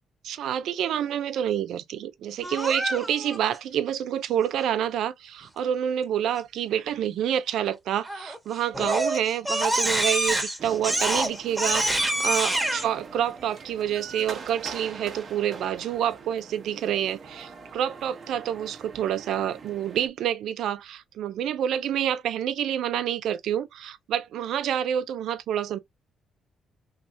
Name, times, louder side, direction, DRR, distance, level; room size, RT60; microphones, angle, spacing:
voice 1, 0.2-25.8, right 10 dB, 75° right, 0.5 m, -28 dB
Crying sobbing, 2.4-3.4 8.0-8.4 8.7-12.8, right 1 dB, 5° right, 1.3 m, -26 dB
sound 1, 10.6-20.1, right 4 dB, 45° right, 1.0 m, -43 dB
3.4 x 3.1 x 2.7 m
cardioid pair, 100°, 0 cm